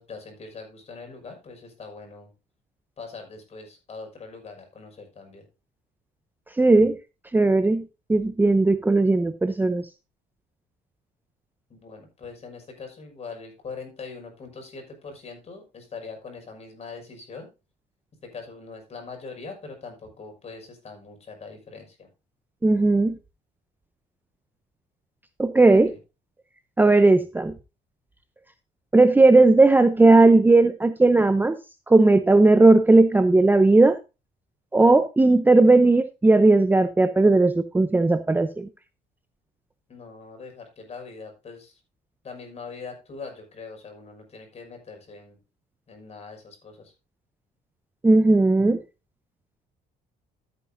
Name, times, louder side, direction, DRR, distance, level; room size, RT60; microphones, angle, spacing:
voice 1, 0.0-2.3 3.0-5.4 11.7-17.5 18.2-22.1 25.7-26.0 39.9-41.8 42.2-45.4 45.9-46.9, left 4 dB, 40° left, 3 dB, 6.0 m, -42 dB
voice 2, 6.6-7.0 7.3-9.9 22.6-23.1 25.4-25.9 26.8-27.5 28.9-31.5 31.9-34.0 34.7-38.7 48.0-48.8, right 2 dB, 10° right, 11 dB, 0.7 m, -17 dB
14.0 x 8.9 x 2.7 m, 0.28 s
cardioid pair, 110°, 17 cm